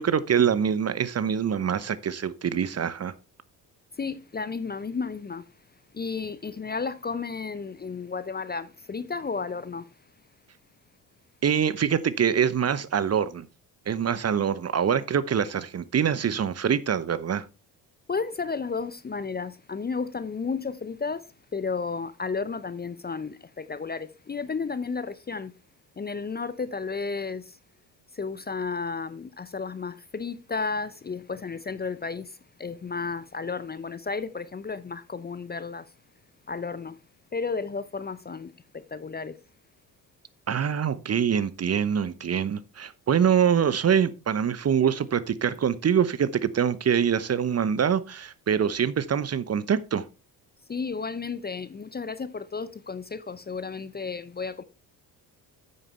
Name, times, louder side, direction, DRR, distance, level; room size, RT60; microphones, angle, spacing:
voice 1, 0.0-3.1 11.4-13.5 13.9-17.4 40.5-50.0, right 8 dB, 30° right, 0.9 m, -24 dB
voice 2, 3.9-10.3 18.1-25.5 26.0-27.6 28.1-36.0 36.5-37.0 37.3-39.4 50.7-54.6, left 4 dB, 20° left, 0.7 m, -33 dB
9.7 x 8.9 x 3.3 m
hypercardioid pair, 50°, 49 cm